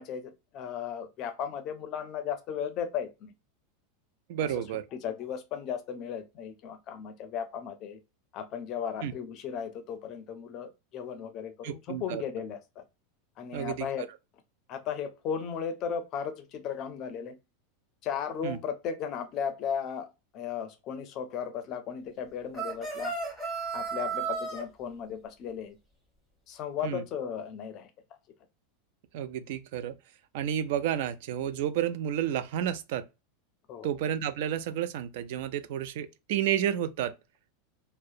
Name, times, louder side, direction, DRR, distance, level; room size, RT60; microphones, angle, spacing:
voice 1, 0.0-3.3 4.4-4.6 4.9-8.0 8.3-12.8 13.4-14.0 14.7-17.4 18.0-20.1 20.3-23.2 23.7-25.8 26.5-27.9 33.7-33.9, left 7 dB, 35° left, 0.5 m, -36 dB
voice 2, 4.3-4.8 9.0-9.1 11.6-12.2 13.5-13.9 18.4-18.6 26.8-27.0 29.1-29.9 30.3-33.1 33.8-37.1, right 10 dB, 60° right, 0.3 m, -31 dB
sound 1, 22.5-24.6, right 5 dB, 5° right, 0.9 m, -33 dB
2.7 x 2.0 x 2.3 m
supercardioid pair, 160°, 0 cm